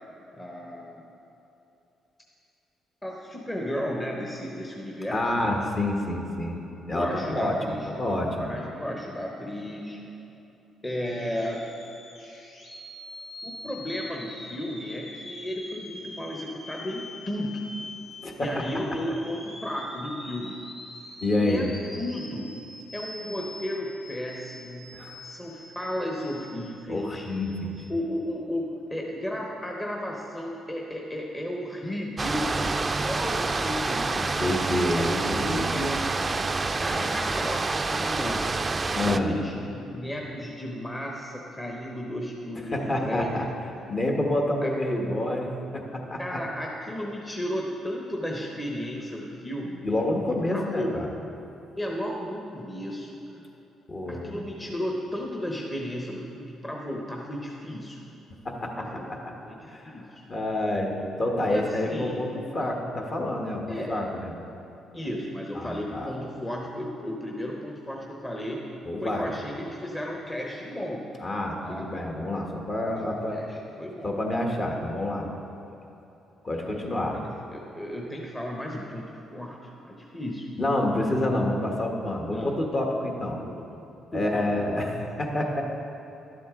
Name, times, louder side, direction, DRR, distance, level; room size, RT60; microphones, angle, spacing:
voice 1, 0.3-1.0 3.0-5.5 6.9-7.9 8.4-10.0 10.8-11.6 13.4-17.6 18.4-20.6 21.4-21.7 21.9-22.5 22.9-25.0 25.2-27.3 27.9-36.0 36.8-38.5 39.0-43.5 43.9-44.0 44.6-44.7 46.2-49.8 50.5-51.0 51.7-53.5 54.1-58.0 58.8-59.1 59.4-60.2 61.4-62.4 63.7-63.9 64.9-68.6 69.0-71.1 71.6-72.1 72.9-73.0 73.3-74.2 76.5-77.2 77.5-80.5 82.3-82.5 83.4-83.8 84.1-84.7, left 1 dB, 20° left, -1 dB, 1.0 m, -34 dB
voice 2, 5.1-6.6 6.9-8.5 18.2-18.6 21.2-21.7 24.9-25.3 26.9-27.8 34.1-35.9 37.0-37.1 38.9-39.3 42.7-43.4 43.9-46.4 49.8-51.1 53.9-54.4 58.4-58.8 59.7-60.9 61.2-64.3 65.5-66.1 68.8-69.3 71.2-73.4 74.0-75.3 76.4-77.2 80.6-83.4 84.1-85.6, left 1 dB, 40° left, 1 dB, 1.4 m, -28 dB
sound 1, 11.0-27.8, left 1 dB, 70° left, 2.3 m, -44 dB
sound 2, 32.2-39.2, right 3 dB, 30° right, 0.4 m, -27 dB
12.0 x 7.7 x 3.7 m, 3.0 s
cardioid pair, 90°, 0 cm